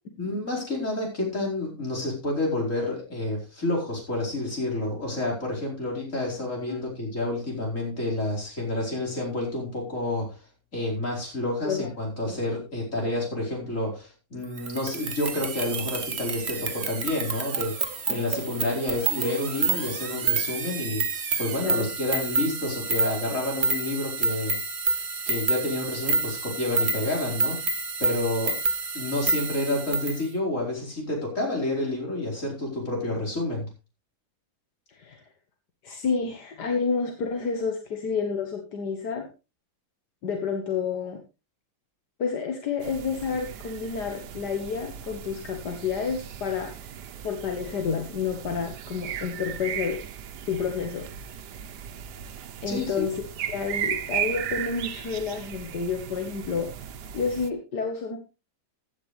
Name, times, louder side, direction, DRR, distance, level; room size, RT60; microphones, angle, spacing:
voice 1, 0.2-10.4 10.7-21.0 21.4-24.6 25.3-27.6 28.0-28.6 28.9-33.7 52.7-53.1, left 2 dB, 50° left, -2 dB, 5.1 m, -29 dB
sound 1, 14.6-30.2, right 4 dB, 45° right, 1.4 m, -29 dB
voice 2, 34.9-35.2 35.8-39.3 40.2-41.2 42.2-46.7 47.2-50.0 50.5-51.1 52.6-53.1 53.5-56.7 57.1-58.2, left 5 dB, 80° left, 4 dB, 2.1 m, -29 dB
sound 2, 42.8-57.5, right 9 dB, 80° right, 1.4 m, -36 dB
15.5 x 10.0 x 3.3 m, 0.29 s
omnidirectional pair, 1.7 m